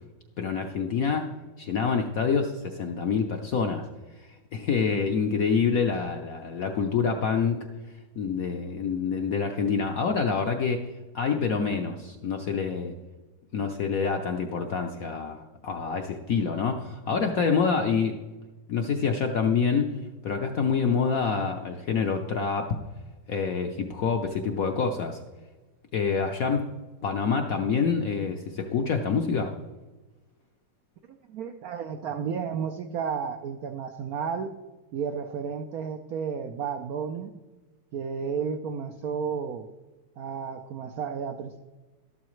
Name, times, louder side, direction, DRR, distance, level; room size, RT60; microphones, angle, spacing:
voice 1, 0.4-1.3 1.6-3.8 4.2-7.6 8.2-10.8 11.1-13.0 13.5-18.2 18.7-19.9 20.2-22.8 23.3-25.2 25.9-26.6 27.0-29.5, left 5 dB, 70° left, 5 dB, 0.8 m, -26 dB
voice 2, 31.3-34.5 34.9-37.3 37.9-39.7 40.2-41.6, right 6 dB, 90° right, 7 dB, 0.8 m, -32 dB
13.0 x 12.0 x 3.1 m, 1.2 s
omnidirectional pair, 2.3 m